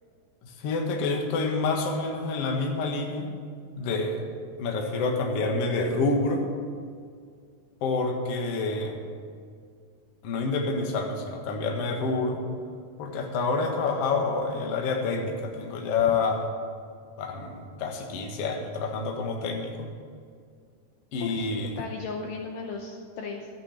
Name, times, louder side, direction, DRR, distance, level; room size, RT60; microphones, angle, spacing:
voice 1, 0.4-3.3 3.7-4.2 4.6-6.4 7.8-9.0 10.2-12.4 13.0-16.4 17.2-19.9 21.1-21.8, left 3 dB, 60° left, 2 dB, 1.6 m, -28 dB
voice 2, 21.2-23.5, left 4 dB, 75° left, 2 dB, 2.2 m, -36 dB
13.5 x 8.3 x 7.6 m, 2.1 s
omnidirectional pair, 4.9 m